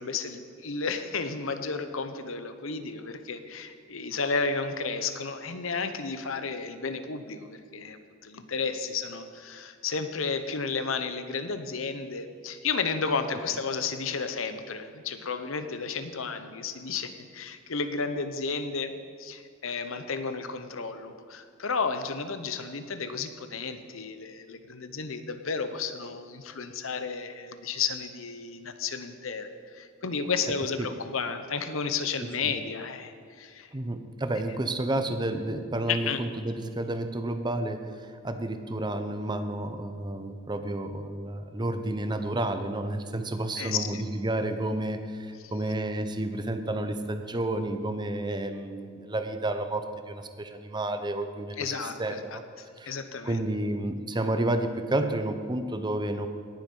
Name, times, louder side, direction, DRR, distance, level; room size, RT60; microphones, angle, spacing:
voice 1, 0.0-33.7 35.9-36.2 43.6-44.0 45.4-45.5 51.6-52.4 52.8-53.4, left 5 dB, 70° left, 9 dB, 0.9 m, -32 dB
voice 2, 32.2-32.5 33.7-52.4 52.8-52.9 53.2-56.3, right 1 dB, 20° right, 8 dB, 0.8 m, -31 dB
18.5 x 7.6 x 5.4 m, 2.3 s
head